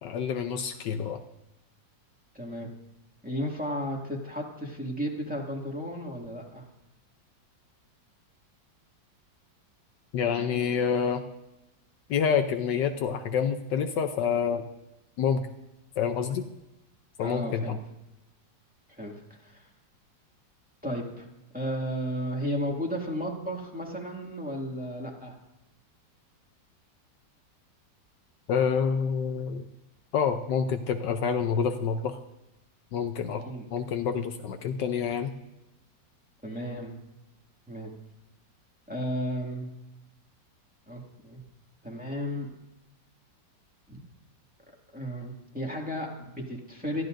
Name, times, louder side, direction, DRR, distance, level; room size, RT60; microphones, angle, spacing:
voice 1, 0.0-1.2 10.1-11.2 12.1-14.7 15.2-15.5 16.0-16.5 17.2-17.8 28.5-29.6 30.1-32.2 32.9-33.4 33.7-35.3, left 7 dB, 75° left, 7 dB, 1.3 m, -27 dB
voice 2, 2.3-2.7 3.2-6.7 17.2-17.8 18.9-19.1 19.4-19.7 20.8-21.3 21.5-25.3 33.4-33.7 36.4-37.0 37.7-37.9 38.9-39.7 40.9-41.4 41.8-42.5 43.9-44.0 44.9-47.0, equal, 5° right, -2 dB, 2.0 m, -34 dB
22.0 x 14.5 x 2.6 m, 0.96 s
omnidirectional pair, 2.0 m